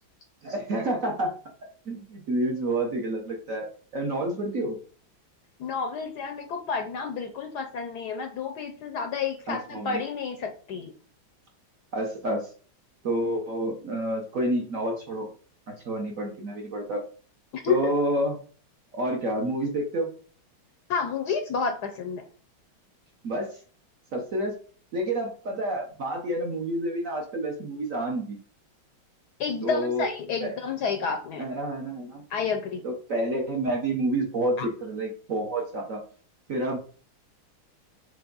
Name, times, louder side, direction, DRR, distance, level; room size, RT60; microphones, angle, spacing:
voice 1, 0.4-1.3 1.9-3.7 3.9-4.8 9.5-10.0 11.9-12.5 13.0-15.3 15.7-17.0 17.7-18.3 18.9-20.1 23.2-23.6 24.1-24.6 24.9-28.4 29.6-30.1 30.4-30.5 31.4-32.2 32.8-36.0 36.5-36.8, right 1 dB, 50° right, 1 dB, 1.1 m, -29 dB
voice 2, 5.6-10.9 17.5-17.9 20.9-22.3 29.4-31.5 32.3-32.8 34.6-34.7, left 5 dB, 70° left, 5 dB, 1.0 m, -30 dB
6.9 x 3.6 x 3.9 m, 0.42 s
omnidirectional pair, 2.3 m